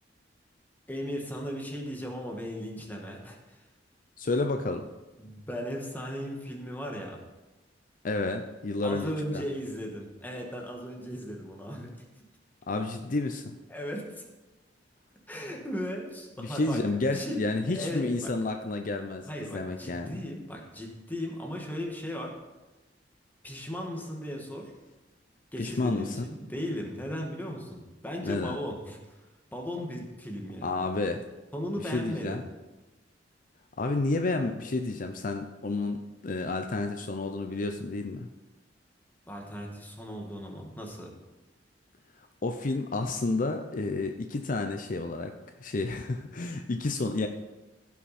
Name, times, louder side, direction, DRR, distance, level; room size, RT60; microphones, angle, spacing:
voice 1, 0.9-3.7 5.2-7.2 8.8-12.2 13.7-14.2 15.3-16.8 17.1-17.4 17.7-18.3 19.3-22.3 23.4-24.7 25.5-30.9 31.5-32.4 39.3-41.1, equal, 10° left, 0 dB, 1.5 m, -37 dB
voice 2, 4.2-4.9 8.0-9.4 12.7-13.5 16.4-20.2 25.6-26.3 28.2-28.6 30.6-31.3 31.8-32.4 33.8-38.3 42.2-45.3 45.6-47.3, left 2 dB, 45° left, 6 dB, 0.5 m, -30 dB
16.0 x 5.9 x 4.2 m, 1.1 s
head